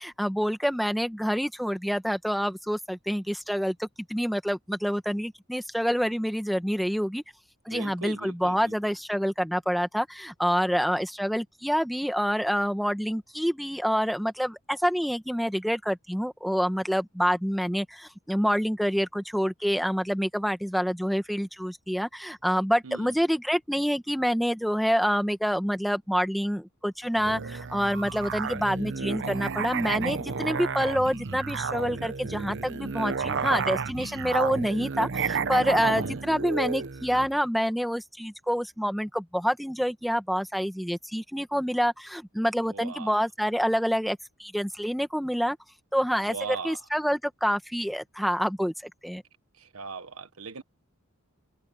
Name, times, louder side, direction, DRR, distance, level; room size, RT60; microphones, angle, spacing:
voice 1, 0.0-7.2 7.6-45.6 45.9-49.2, equal, ahead, 1.3 m, -27 dB
voice 2, 7.7-8.9 22.8-23.1 35.8-36.2 42.6-43.2 46.2-46.8 49.6-50.6, right 4 dB, 75° right, 1.4 m, -39 dB
Musical instrument, 27.2-37.3, right 5 dB, 60° right, 0.9 m, -31 dB
head